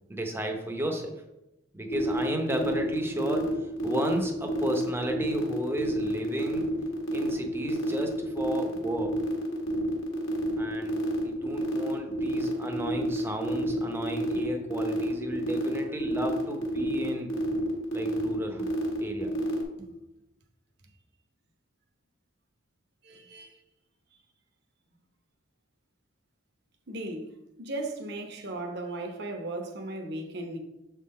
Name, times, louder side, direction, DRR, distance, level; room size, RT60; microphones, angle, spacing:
voice 1, 0.1-1.2 1.7-6.7 7.1-9.1 10.6-10.9 11.2-17.3 17.9-18.7 19.0-19.3, right 1 dB, 10° right, 0.7 m, -33 dB
sound 1, 1.9-19.6, right 1 dB, 75° left, 1.3 m, -31 dB
voice 2, 23.0-23.6 26.9-27.3 27.6-30.6, right 2 dB, 55° right, 0.9 m, -36 dB
7.0 x 3.7 x 4.2 m
head